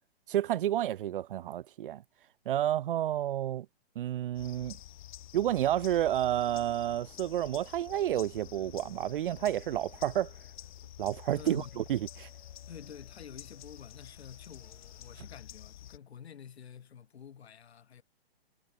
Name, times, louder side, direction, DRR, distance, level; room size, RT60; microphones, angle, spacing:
voice 1, 0.3-2.0 2.5-3.7 4.0-4.8 5.3-10.3 11.0-12.3, right 12 dB, 55° right, 0.5 m, -30 dB
sound 1, 4.3-16.0, left 12 dB, 50° left, 0.5 m, -49 dB
sound 2, 5.8-11.3, left 20 dB, 20° left, 1.9 m, -61 dB
sound 3, 10.6-15.8 17.0-17.1, right 7 dB, 85° right, 2.7 m, -61 dB
voice 2, 11.3-11.8 12.7-18.0, left 8 dB, 75° left, 3.6 m, -49 dB
hypercardioid pair, 155°, 32 cm